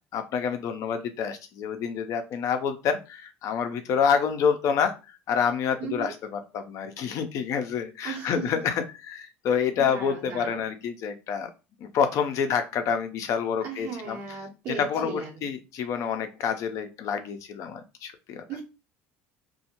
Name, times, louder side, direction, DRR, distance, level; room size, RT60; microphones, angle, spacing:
voice 1, 0.1-4.9 5.3-11.5 11.8-14.2 14.8-18.4, left 7 dB, 60° left, 8 dB, 0.5 m, -28 dB
voice 2, 5.8-6.1 8.0-8.5 9.8-10.7 13.6-15.5 18.5-18.6, right 6 dB, 55° right, -3 dB, 0.8 m, -37 dB
2.2 x 2.1 x 2.9 m, 0.29 s
hypercardioid pair, 70°, 6 cm